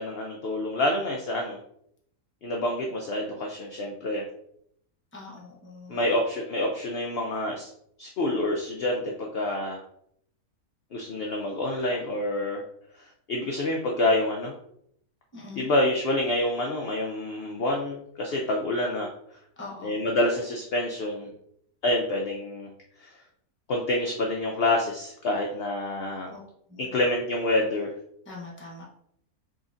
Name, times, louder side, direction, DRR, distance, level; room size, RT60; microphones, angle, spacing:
voice 1, 0.0-1.6 2.4-4.2 5.9-7.7 8.0-9.8 10.9-12.6 13.3-14.5 15.6-19.1 19.8-21.3 21.8-22.7 23.0-23.1 23.7-26.3 26.8-27.9, left 1 dB, 65° left, 0 dB, 0.6 m, -27 dB
voice 2, 5.1-6.0 15.3-15.7 19.6-20.1 26.3-26.4 26.7-26.9 28.3-28.8, left 3 dB, 10° left, -3 dB, 0.7 m, -42 dB
3.8 x 3.1 x 2.5 m, 0.71 s
omnidirectional pair, 1.5 m